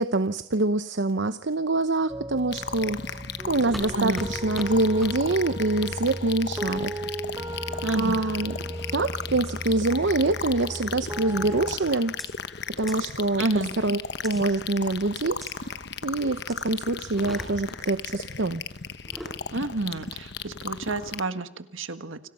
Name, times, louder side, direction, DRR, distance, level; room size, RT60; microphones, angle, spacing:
voice 1, 0.0-6.9 8.0-8.6 8.9-12.1 12.8-13.4 13.8-18.6, right 2 dB, 65° right, 11 dB, 0.9 m, -25 dB
sound 1, 2.1-11.8, right 1 dB, 15° right, 1.1 m, -36 dB
sound 2, 2.5-21.2, left 6 dB, 55° left, 1.1 m, -36 dB
sound 3, 3.7-3.9 4.2-4.3 4.6-4.7 5.0-5.1 5.8-6.0 6.7-6.8 7.7-8.1 8.6-9.0 9.5-9.8 10.6-10.9 11.7-11.8 12.2-12.3 12.9-13.0 14.2-14.4 15.4-15.5 16.5-16.6 17.1-17.8 18.9-19.4, equal, ahead, 6.5 m, -40 dB
voice 2, 7.8-8.2 13.4-13.7 19.5-22.3, right 2 dB, 85° right, 10 dB, 1.7 m, -29 dB
30.0 x 26.5 x 5.5 m, 0.79 s
head